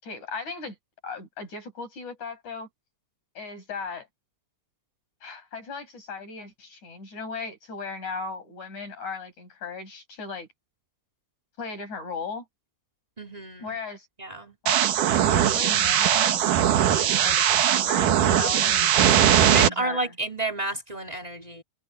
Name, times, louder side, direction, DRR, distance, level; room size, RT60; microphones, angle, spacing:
voice 1, 0.0-0.8 1.0-2.7 3.4-4.1 5.2-10.5 11.6-12.4 13.6-14.1 14.6-14.8 15.1-19.2 19.5-20.1, left 4 dB, 40° left, 8.9 m, -37 dB
voice 2, 13.2-13.8 14.2-14.6 19.4-21.6, right 2 dB, 10° right, 4.0 m, -31 dB
sound 1, 14.7-19.7, right 10 dB, 65° right, 2.1 m, -20 dB
omnidirectional pair, 5.5 m